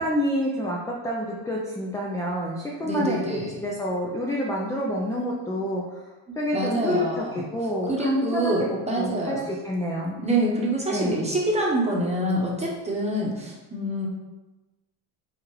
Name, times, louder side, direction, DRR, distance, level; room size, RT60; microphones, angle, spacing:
voice 1, 0.0-3.2 3.6-6.1 6.4-10.2 10.9-11.2, equal, 10° left, -3 dB, 0.4 m, -28 dB
voice 2, 2.8-3.5 6.3-7.4 7.9-9.4 10.2-14.1, right 1 dB, 15° right, -3 dB, 0.9 m, -26 dB
4.7 x 2.4 x 3.0 m, 1.1 s
cardioid pair, 105°, 44 cm